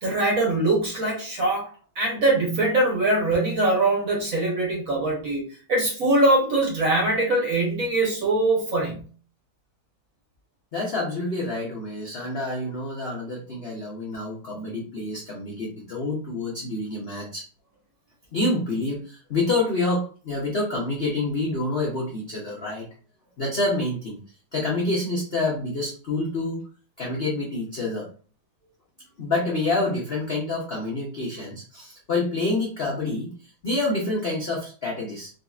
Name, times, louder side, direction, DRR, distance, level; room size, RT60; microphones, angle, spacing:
voice 1, 0.0-5.4 5.7-9.0, right 2 dB, 50° right, -2 dB, 1.3 m, -22 dB
voice 2, 10.7-17.4 18.3-22.9 23.4-24.2 24.5-26.6 27.0-28.1 29.2-33.3 33.6-35.3, left 2 dB, 55° left, -4 dB, 0.6 m, -27 dB
3.9 x 2.6 x 2.3 m, 0.40 s
omnidirectional pair, 2.1 m